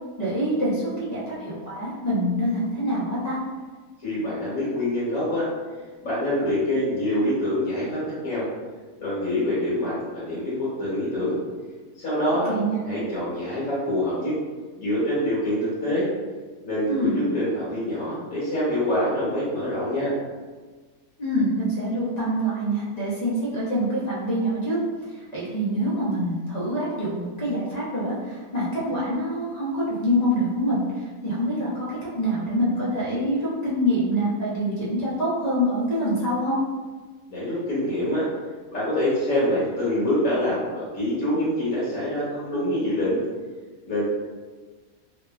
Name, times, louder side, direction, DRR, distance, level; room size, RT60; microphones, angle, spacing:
voice 1, 0.2-3.4 12.5-12.8 16.9-17.2 21.2-24.8 25.1-31.9 32.1-36.6, equal, 40° left, -9 dB, 0.6 m, -25 dB
voice 2, 4.0-5.5 6.0-8.4 9.0-11.4 12.0-12.5 12.8-14.3 14.8-16.1 16.6-20.1 37.3-38.2 38.7-43.2 43.9-44.1, left 1 dB, 65° left, -10 dB, 1.3 m, -25 dB
2.8 x 2.2 x 2.3 m, 1.4 s
omnidirectional pair, 1.5 m